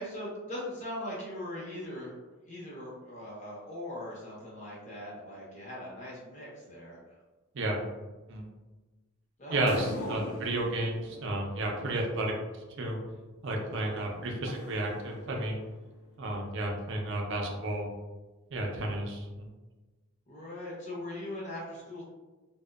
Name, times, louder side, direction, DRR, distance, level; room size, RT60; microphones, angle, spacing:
voice 1, 0.0-2.1 2.5-7.0 9.4-10.2 13.9-14.2 20.3-22.0, left 1 dB, 35° left, -5 dB, 0.7 m, -40 dB
voice 2, 9.5-12.3 12.8-13.0 13.4-15.6 16.2-17.9 18.5-19.5, right 1 dB, 55° right, 0 dB, 0.4 m, -32 dB
sound 1, 9.7-12.3 13.8-15.9, left 2 dB, 65° left, 0.3 m, -44 dB
2.6 x 2.1 x 2.3 m, 1.2 s
head